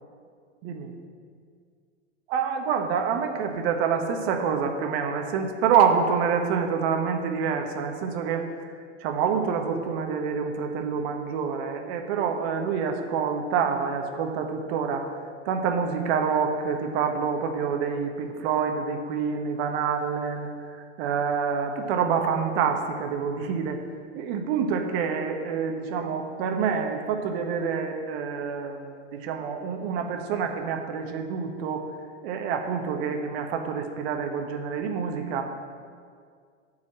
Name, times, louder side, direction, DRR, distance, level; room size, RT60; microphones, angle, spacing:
voice 1, 2.3-8.4 9.0-15.1 15.4-23.8 24.1-31.9 32.2-35.5, right 6 dB, 55° right, 4 dB, 1.4 m, -27 dB
11.5 x 4.8 x 7.5 m, 2.1 s
hypercardioid pair, 95°, 37 cm